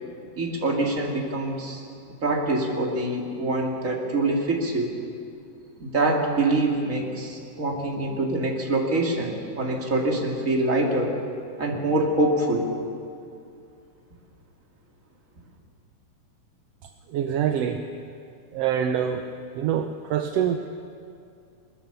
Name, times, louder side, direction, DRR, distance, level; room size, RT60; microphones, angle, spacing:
voice 1, 0.3-1.8 2.2-4.9 5.8-11.1 11.6-12.7, right 2 dB, 25° right, 0 dB, 2.6 m, -25 dB
voice 2, 17.1-17.8 18.5-19.2 19.5-20.6, right 9 dB, 70° right, 6 dB, 1.5 m, -25 dB
21.5 x 21.0 x 6.9 m, 2.4 s
omnidirectional pair, 3.6 m